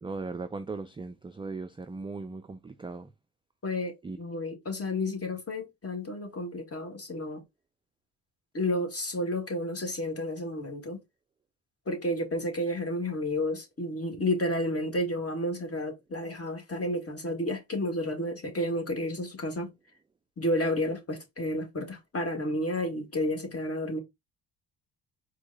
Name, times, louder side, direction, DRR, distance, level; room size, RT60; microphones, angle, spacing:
voice 1, 0.0-3.1 4.0-4.2, right 3 dB, 10° right, 0.3 m, -38 dB
voice 2, 3.6-7.4 8.5-11.0 11.9-19.7 20.4-24.0, left 1 dB, 30° left, 1.8 m, -31 dB
4.5 x 2.3 x 3.8 m
hypercardioid pair, 50°, 46 cm